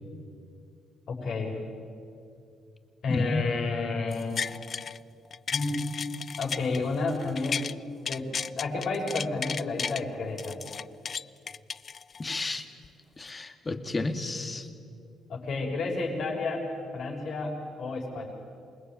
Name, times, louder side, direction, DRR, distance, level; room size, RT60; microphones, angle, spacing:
voice 1, 1.1-1.6 3.0-4.5 5.5-5.8 6.4-7.7 8.1-10.6 15.3-16.6 16.9-18.3, left 3 dB, 65° left, 0 dB, 6.0 m, -31 dB
voice 2, 3.1-3.5 12.2-12.6 13.2-14.7, left 2 dB, 25° left, 8 dB, 2.1 m, -31 dB
sound 1, 4.1-5.0 5.3-7.7 8.0-10.0 10.4-12.4 12.8-12.9, left 6 dB, 45° left, 0.5 m, -34 dB
27.5 x 20.5 x 9.1 m, 2.5 s
cardioid pair, 90°, 0 cm